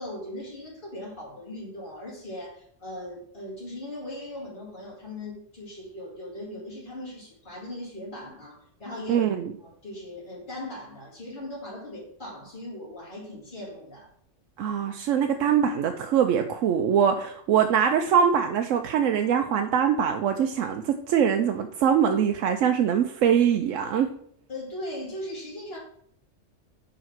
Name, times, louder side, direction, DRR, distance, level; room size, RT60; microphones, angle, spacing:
voice 1, 0.0-9.3 9.6-14.1 24.5-25.8, left 1 dB, 40° left, -8 dB, 2.8 m, -39 dB
voice 2, 9.1-9.5 14.6-24.1, right 8 dB, 80° right, 5 dB, 0.9 m, -23 dB
5.1 x 5.0 x 5.9 m, 0.65 s
omnidirectional pair, 1.3 m